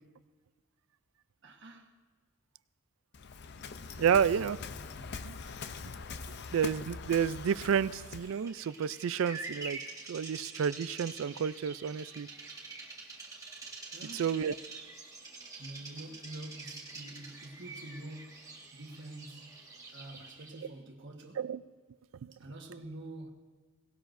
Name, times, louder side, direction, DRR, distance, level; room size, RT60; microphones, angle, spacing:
voice 1, 1.4-1.9 4.0-4.4 4.9-5.1 6.3-6.5 13.9-14.3 15.6-21.5 22.3-23.3, right 1 dB, 55° right, 1.4 m, -47 dB
Waves surf, 3.1-8.4, left 5 dB, 55° left, 0.5 m, -43 dB
voice 2, 4.0-4.6 5.2-5.4 6.5-9.8 10.1-12.3 14.1-14.5 21.4-21.6 22.2-22.3, right 7 dB, 75° right, 0.3 m, -30 dB
Bird vocalization bird call bird song, 8.0-20.7, right 3 dB, 15° right, 1.6 m, -46 dB
18.5 x 17.5 x 2.6 m
head